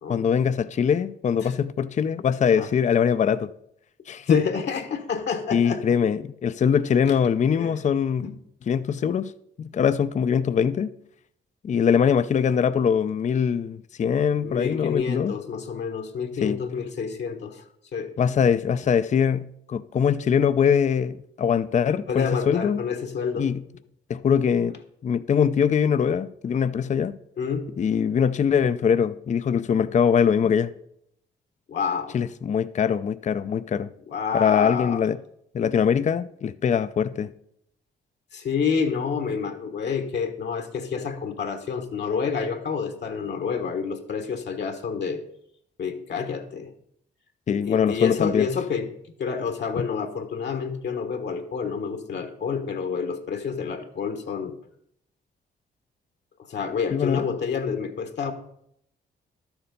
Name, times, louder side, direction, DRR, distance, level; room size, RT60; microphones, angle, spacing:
voice 1, 0.1-3.5 4.1-4.4 5.5-8.2 8.7-9.3 9.6-10.9 11.6-15.3 16.4-16.6 18.2-22.8 23.4-23.6 24.1-27.1 27.8-30.7 32.1-33.9 34.3-35.2 35.5-37.3 47.5-48.5 49.8-49.9 56.9-57.3, left 7 dB, 40° left, 0.4 m, -22 dB
voice 2, 4.3-5.8 7.0-7.1 7.6-7.7 8.2-8.3 14.1-17.6 17.9-18.1 22.1-23.6 27.4-27.7 31.7-32.2 34.1-35.0 38.3-45.2 45.8-46.7 47.5-48.9 49.2-54.5 56.5-58.3, left 6 dB, 70° left, 1.3 m, -28 dB
12.0 x 7.1 x 5.2 m
cardioid pair, 100°, 19 cm